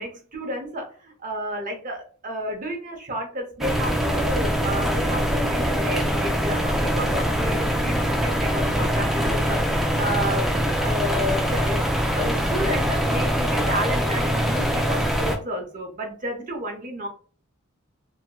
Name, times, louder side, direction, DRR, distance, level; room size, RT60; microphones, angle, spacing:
voice 1, 0.0-11.8 12.1-17.1, equal, 40° right, 3 dB, 0.7 m, -31 dB
sound 1, 3.6-15.4, equal, ahead, 0.3 m, -23 dB
2.8 x 2.7 x 2.2 m, 0.40 s
head